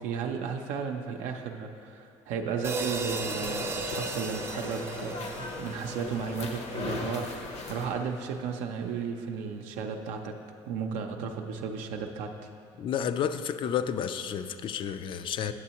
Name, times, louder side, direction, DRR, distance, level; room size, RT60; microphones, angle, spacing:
voice 1, 0.0-10.3 10.7-12.5, right 6 dB, 85° right, 3 dB, 0.5 m, -34 dB
sound 1, 2.6-7.0, right 4 dB, 20° right, 0.4 m, -36 dB
sound 2, 2.7-7.9, left 3 dB, 65° left, 0.9 m, -38 dB
voice 2, 12.8-15.5, left 8 dB, 45° left, 11 dB, 0.3 m, -31 dB
9.7 x 6.9 x 2.9 m, 2.4 s
cardioid pair, 110°, 12 cm